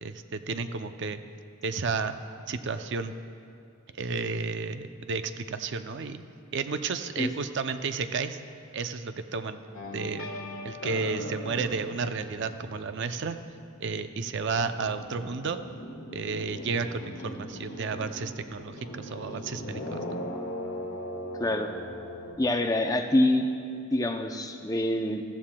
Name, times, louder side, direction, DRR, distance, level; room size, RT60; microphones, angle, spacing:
voice 1, 0.0-1.2 1.6-2.2 2.5-3.1 4.0-6.2 6.5-8.4 8.7-9.6 9.9-10.3 10.6-13.4 13.8-15.6 16.1-20.0, right 4 dB, 55° right, 9 dB, 0.5 m, -32 dB
sound 1, 9.7-13.8 14.1-22.3, left 1 dB, 85° left, 1.4 m, -39 dB
voice 2, 21.4-21.7 22.4-23.5 23.9-25.2, left 1 dB, 15° left, 5 dB, 0.5 m, -25 dB
15.5 x 14.5 x 2.2 m, 2.5 s
head